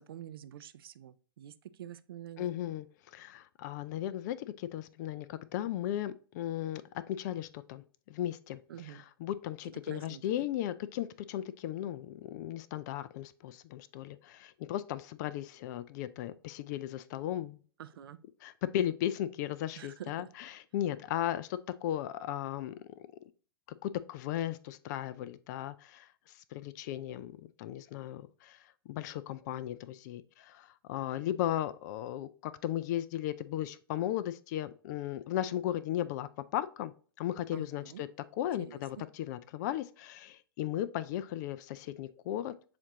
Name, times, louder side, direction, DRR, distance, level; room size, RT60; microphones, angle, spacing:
voice 1, 0.0-1.5 1.8-2.5 8.7-9.0 9.9-10.5 17.8-18.2 19.8-20.3 37.5-38.0 38.6-39.1, right 11 dB, 70° right, 0.4 m, -47 dB
voice 2, 2.4-2.9 3.1-6.8 7.1-17.6 18.4-23.3 23.8-26.1 26.5-36.9 37.2-38.1 38.4-42.5, left 12 dB, 50° left, 0.3 m, -36 dB
7.1 x 2.6 x 2.8 m
hypercardioid pair, 110°, 12 cm